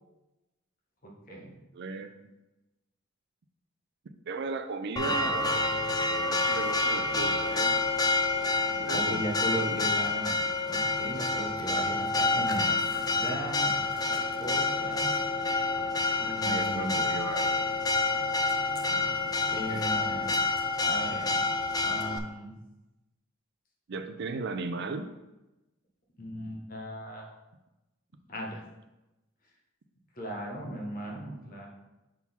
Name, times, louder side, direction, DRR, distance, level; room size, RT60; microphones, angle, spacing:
voice 1, 1.0-1.4 5.0-5.3 8.6-13.7 14.0-15.1 16.2-17.1 19.4-20.3 20.8-21.5 21.8-22.5 26.2-27.3 28.3-28.6 30.2-31.7, right 1 dB, 45° left, -1 dB, 1.2 m, -37 dB
voice 2, 1.7-2.3 4.3-5.7 6.1-7.8 8.7-9.2 9.5-9.8 12.3-12.5 16.2-17.6 18.9-19.3 19.6-20.0 23.9-25.1, right 4 dB, 55° right, 8 dB, 0.4 m, -37 dB
Church bell, 5.0-22.2, left 3 dB, 20° left, 0.3 m, -28 dB
5.8 x 3.8 x 4.3 m, 1.0 s
head